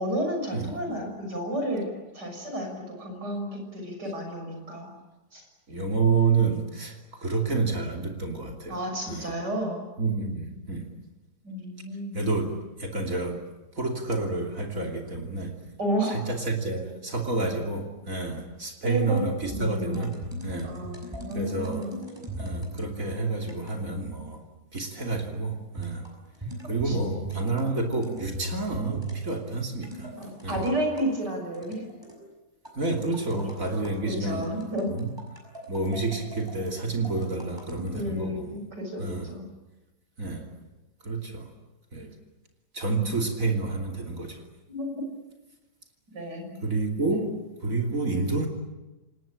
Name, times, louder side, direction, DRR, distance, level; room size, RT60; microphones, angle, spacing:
voice 1, 0.0-4.9 5.3-5.5 8.7-9.8 11.4-12.3 15.8-16.2 18.8-20.0 20.6-22.0 26.6-27.0 30.2-31.8 33.0-34.9 37.9-39.4 42.9-43.2 44.7-45.0 46.1-46.6, equal, 90° right, 3 dB, 6.9 m, -32 dB
voice 2, 5.7-8.8 9.1-9.3 10.0-10.9 12.1-13.4 13.7-15.7 16.1-20.1 20.4-20.7 21.3-21.9 22.4-24.4 24.7-26.1 26.6-30.1 30.4-30.6 32.7-34.5 34.9-35.1 35.7-38.6 39.0-39.3 40.2-40.5 41.0-41.5 41.9-42.1 42.7-44.4 46.6-47.4 47.6-48.5, right 3 dB, 50° right, 2 dB, 3.3 m, -29 dB
sound 1, 19.5-22.8 23.4-23.9 25.8-31.1 31.5-32.2 32.7-34.0 34.4-38.1, right 1 dB, 15° right, 6.3 m, -39 dB
27.5 x 19.5 x 8.9 m, 1.1 s
omnidirectional pair, 1.8 m